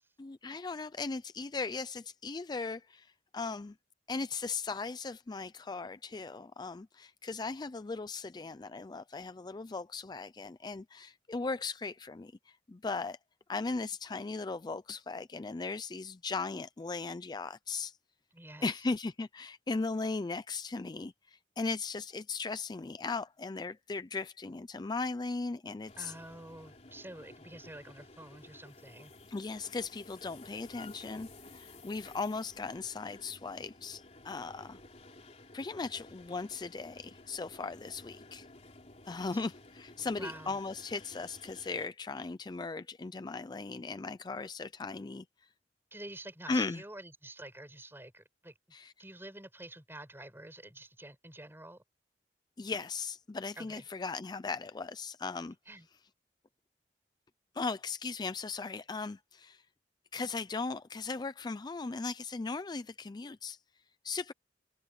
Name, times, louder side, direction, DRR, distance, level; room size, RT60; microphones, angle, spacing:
voice 1, 0.2-3.8 4.1-13.2 13.5-18.0 18.6-26.1 29.3-34.8 35.5-38.5 39.1-45.5 46.5-46.8 48.7-48.9 52.6-55.6 57.5-59.7 60.1-63.6 64.0-64.3, left 4 dB, 25° left, 0.4 m, -38 dB
voice 2, 18.3-18.7 26.0-29.1 39.3-39.5 40.0-40.6 45.9-48.5 49.0-51.8 53.6-53.8 55.7-55.9, right 1 dB, 15° right, 6.3 m, -48 dB
sound 1, 25.9-41.9, left 2 dB, 40° left, 3.2 m, -54 dB
head